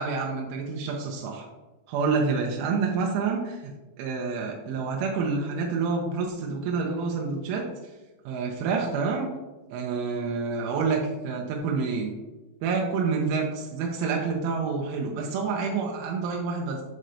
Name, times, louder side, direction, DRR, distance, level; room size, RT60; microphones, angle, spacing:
voice 1, 0.0-1.5 1.9-3.7 4.0-7.9 8.3-9.3 9.7-12.1 12.6-16.8, right 4 dB, 90° right, 0 dB, 3.3 m, -28 dB
12.5 x 4.3 x 2.7 m, 1.1 s
omnidirectional pair, 5.5 m